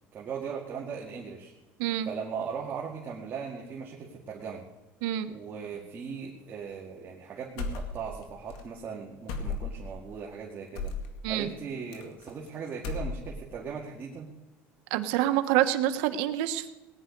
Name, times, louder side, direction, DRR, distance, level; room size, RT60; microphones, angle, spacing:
voice 1, 0.1-1.5 2.1-4.7 5.3-10.9 11.3-14.3, right 6 dB, 35° right, -2 dB, 2.0 m, -38 dB
voice 2, 1.8-2.1 5.0-5.3 11.2-11.5 14.9-16.7, right 12 dB, 85° right, 9 dB, 1.1 m, -27 dB
sound 1, 7.6-8.2 8.5-8.6 9.3-9.9 10.7-11.1 11.9-12.5 12.7-13.5, left 3 dB, 85° left, 2.3 m, -34 dB
19.0 x 10.5 x 5.3 m, 1.1 s
cardioid pair, 145°, 6 cm